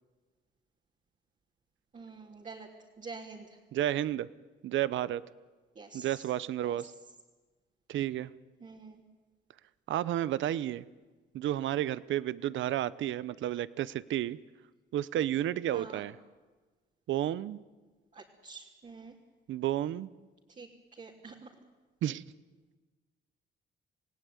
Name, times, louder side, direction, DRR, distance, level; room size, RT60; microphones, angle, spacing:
voice 1, 1.9-2.7 3.0-3.6 5.8-6.3 6.6-6.9 8.6-9.0 15.7-16.0 18.1-19.2 20.5-21.5, right 4 dB, 40° right, -3 dB, 3.4 m, -47 dB
voice 2, 3.7-4.3 4.6-5.2 5.9-6.9 7.9-8.3 9.9-10.8 11.3-14.4 14.9-16.1 17.1-17.6 19.5-20.1 22.0-22.2, right 12 dB, 75° right, 18 dB, 0.8 m, -31 dB
28.0 x 17.5 x 9.5 m, 1.3 s
cardioid pair, 90°, 20 cm